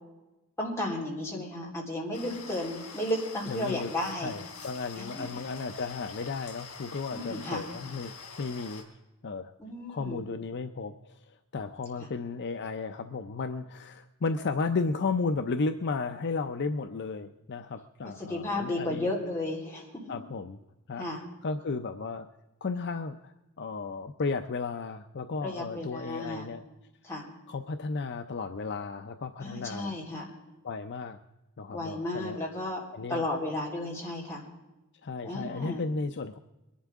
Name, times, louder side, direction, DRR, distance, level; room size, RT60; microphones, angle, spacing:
voice 1, 0.6-4.3 5.0-5.3 7.1-7.6 9.6-10.2 12.0-12.1 18.2-20.2 21.0-21.2 25.4-26.5 27.0-27.2 29.4-30.2 31.7-32.8 33.1-34.5 35.2-35.8, left 1 dB, 10° left, -4 dB, 3.7 m, -33 dB
sound 1, 2.1-8.8, left 5 dB, 75° left, 3.2 m, -45 dB
voice 2, 3.5-3.9 4.2-8.1 8.4-8.8 9.2-9.5 9.9-19.1 20.1-20.6 20.9-21.1 21.4-22.3 22.6-26.6 27.5-29.9 30.6-31.2 31.6-32.4 32.9-33.3 35.0-36.4, left 4 dB, 50° left, 8 dB, 0.5 m, -34 dB
22.5 x 11.5 x 3.6 m, 1.0 s
head